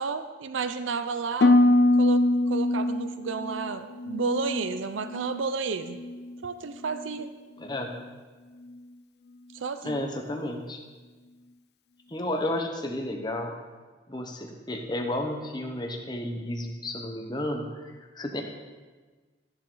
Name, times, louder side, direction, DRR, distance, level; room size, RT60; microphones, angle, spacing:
voice 1, 0.0-1.6 2.0-6.0 6.4-7.3 9.5-10.1, right 5 dB, 80° right, 10 dB, 0.5 m, -31 dB
Harp, 1.4-5.5 5.8-6.4 6.9-7.2, left 2 dB, 55° left, 0.5 m, -24 dB
voice 2, 7.6-7.9 9.8-10.8 12.1-13.6 14.1-18.4, left 1 dB, 20° left, 3 dB, 1.0 m, -32 dB
14.0 x 7.4 x 3.9 m, 1.4 s
head